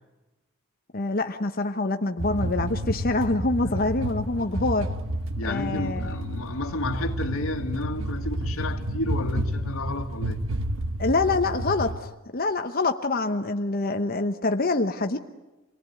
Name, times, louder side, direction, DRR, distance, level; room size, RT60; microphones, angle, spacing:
voice 1, 0.9-4.9 5.4-6.2 11.0-15.2, left 2 dB, 45° left, 1.0 m, -26 dB
sound 1, 2.2-12.0, right 1 dB, 65° right, 1.1 m, -30 dB
voice 2, 5.4-10.4, left 2 dB, 75° left, 1.9 m, -31 dB
27.5 x 20.0 x 9.4 m
head